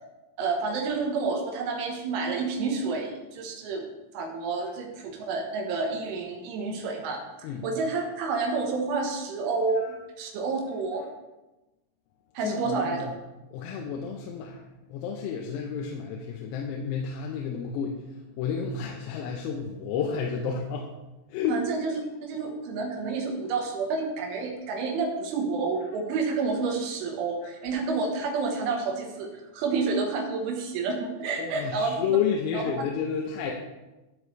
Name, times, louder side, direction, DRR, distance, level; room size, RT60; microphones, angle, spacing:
voice 1, 0.4-3.9 4.1-11.0 12.4-13.1 21.5-32.0 32.5-32.9 33.4-33.5, right 4 dB, 75° right, 2 dB, 3.5 m, -29 dB
voice 2, 12.4-13.1 13.5-14.6 14.9-18.0 18.4-20.9 21.3-21.6 31.4-33.5, left 7 dB, 85° left, 0 dB, 3.6 m, -31 dB
12.5 x 7.8 x 3.3 m, 1.0 s
omnidirectional pair, 5.9 m